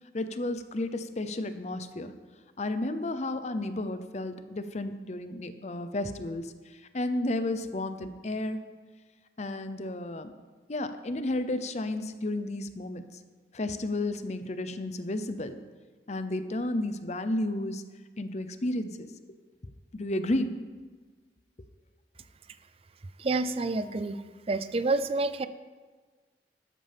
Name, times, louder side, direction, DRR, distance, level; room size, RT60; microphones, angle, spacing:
voice 1, 0.1-2.1 2.6-6.4 6.9-8.6 9.4-10.3 10.7-13.0 13.5-15.5 16.1-17.8 18.2-19.1 19.9-20.5, left 1 dB, 40° left, 10 dB, 0.7 m, -32 dB
voice 2, 23.2-24.2 24.5-25.5, right 3 dB, 35° right, 13 dB, 0.4 m, -28 dB
13.0 x 11.0 x 3.5 m, 1.4 s
head